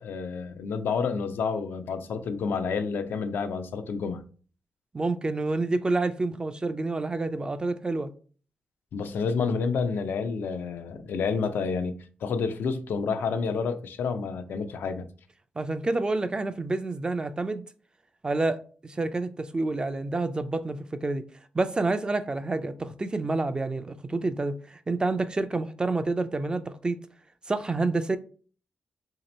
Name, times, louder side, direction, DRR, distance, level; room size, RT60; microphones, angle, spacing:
voice 1, 0.0-4.2 8.9-15.1, left 5 dB, 85° left, 0.4 m, -29 dB
voice 2, 4.9-8.1 15.6-17.6 18.2-18.6 18.8-21.2 21.5-27.0 27.5-28.2, right 3 dB, 25° right, 0.4 m, -28 dB
2.9 x 2.8 x 4.1 m
cardioid pair, 90°, 3 cm